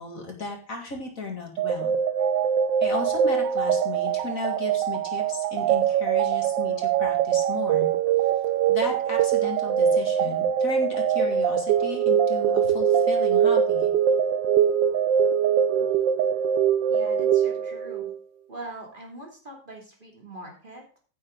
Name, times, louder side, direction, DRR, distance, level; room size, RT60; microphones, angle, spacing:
voice 1, 0.0-1.9 2.8-7.9 8.7-13.9, left 3 dB, 50° left, 1 dB, 2.7 m, -35 dB
sound 1, 1.6-18.2, right 8 dB, 90° right, 1.4 m, -23 dB
voice 2, 16.9-18.1 18.5-21.0, right 1 dB, 25° right, 0 dB, 3.1 m, -42 dB
15.0 x 7.2 x 3.9 m, 0.38 s
omnidirectional pair, 1.9 m